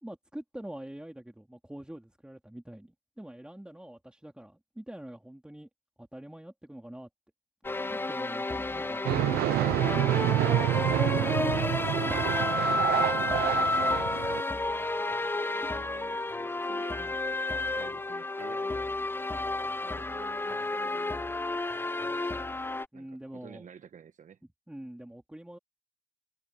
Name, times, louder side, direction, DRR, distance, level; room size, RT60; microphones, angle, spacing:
voice 1, 0.0-5.7 6.0-7.1 7.9-10.8 22.9-23.7 24.4-25.6, right 1 dB, 5° right, 3.0 m, -45 dB
sound 1, 7.6-22.9, left 2 dB, 15° left, 0.7 m, -31 dB
sound 2, 9.0-14.4, right 16 dB, 75° right, 0.4 m, -28 dB
voice 2, 11.8-17.2 17.7-18.9 19.8-21.3 22.9-24.4, right 7 dB, 50° right, 1.3 m, -50 dB
supercardioid pair, 70°, 16 cm